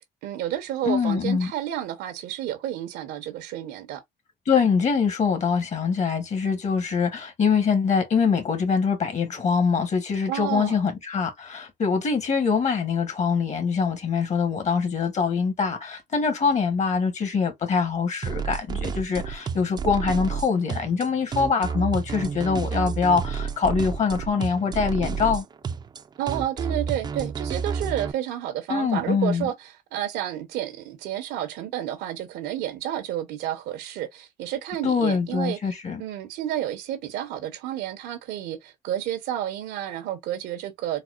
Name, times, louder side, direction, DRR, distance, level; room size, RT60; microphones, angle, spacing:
voice 1, 0.2-4.0 10.3-10.8 26.2-35.6 36.0-41.0, right 12 dB, 85° right, 0.9 m, -30 dB
voice 2, 0.8-1.5 4.5-25.4 28.7-29.5 34.8-36.0, left 5 dB, 45° left, 1.2 m, -24 dB
sound 1, 18.2-28.1, right 6 dB, 25° right, 0.4 m, -30 dB
4.1 x 2.1 x 2.4 m
cardioid pair, 110°, 17 cm